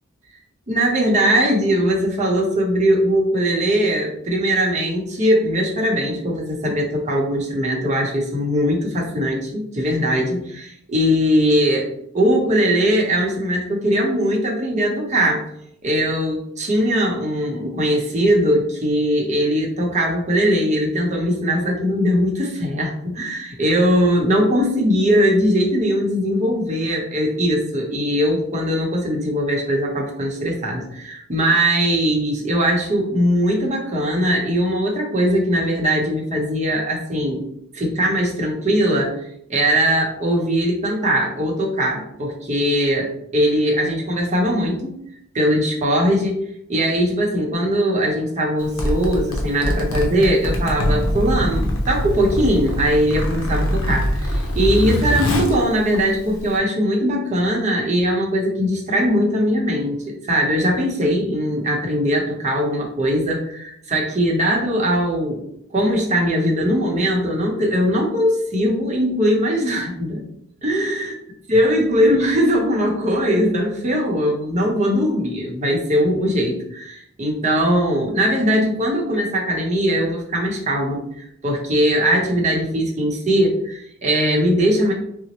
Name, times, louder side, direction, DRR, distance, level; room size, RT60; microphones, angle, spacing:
voice 1, 0.7-11.9 12.1-15.4 15.8-37.4 37.7-39.2 39.5-44.9 45.3-46.4 46.7-65.4 65.7-70.2 70.6-71.1 71.5-84.9, equal, 35° right, -2 dB, 0.8 m, -20 dB
Zipper (clothing), 48.6-56.6, left 1 dB, 70° left, 0.7 m, -23 dB
4.0 x 2.1 x 2.9 m, 0.73 s
head